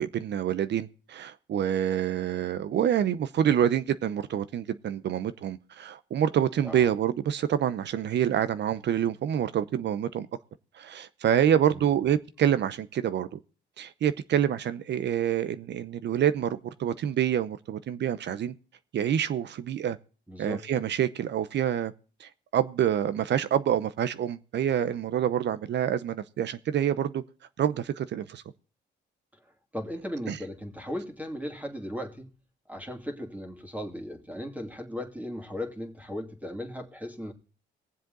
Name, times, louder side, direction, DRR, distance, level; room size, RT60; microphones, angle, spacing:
voice 1, 0.0-10.3 10.8-13.4 13.8-18.5 18.9-20.0 20.4-21.9 22.2-27.2 27.6-28.4 30.3-30.4, right 9 dB, 60° right, 0.7 m, -27 dB
voice 2, 20.3-20.7 29.7-32.3 32.7-37.3, equal, 10° right, 2.5 m, -37 dB
19.5 x 7.6 x 3.9 m
cardioid pair, 90°, 20 cm